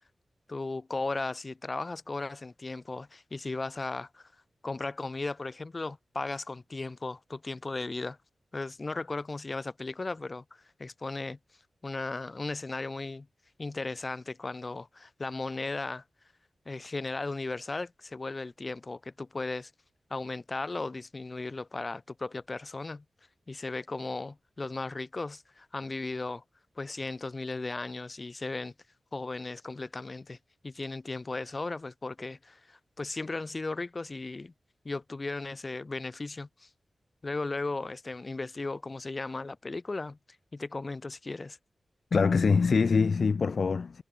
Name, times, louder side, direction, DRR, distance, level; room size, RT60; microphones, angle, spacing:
voice 1, 0.5-4.3 4.6-8.2 8.5-11.4 11.8-13.3 13.6-16.0 16.6-19.7 20.1-23.0 23.5-26.4 26.8-28.7 29.1-30.4 30.6-34.5 34.8-36.7 37.2-40.2 40.5-41.6, left 3 dB, 40° left, 1.4 m, -36 dB
voice 2, 42.1-44.0, left 5 dB, 65° left, 1.6 m, -24 dB
wide cardioid pair, 75°, 0 cm